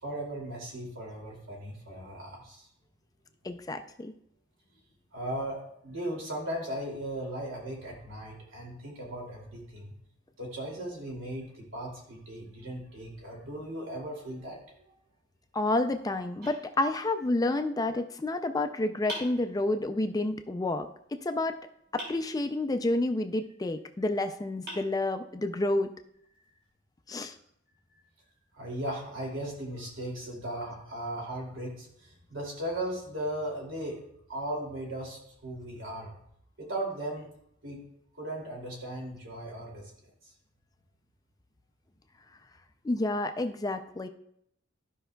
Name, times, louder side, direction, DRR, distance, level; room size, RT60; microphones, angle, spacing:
voice 1, 0.0-2.7 5.1-9.9 10.4-14.9 28.5-34.0 34.3-36.1 36.6-37.3 37.6-37.8 38.1-39.9, right 1 dB, 80° right, -1 dB, 2.6 m, -37 dB
voice 2, 3.4-4.1 15.5-21.6 21.9-25.9 27.1-27.3 42.8-44.1, left 2 dB, 20° left, 8 dB, 0.4 m, -29 dB
sound 1, 16.4-17.4 19.1-20.1 22.0-22.9 24.1-24.2 24.7-25.6, equal, 55° right, 3.3 m, -44 dB
14.0 x 5.4 x 2.3 m, 0.73 s
head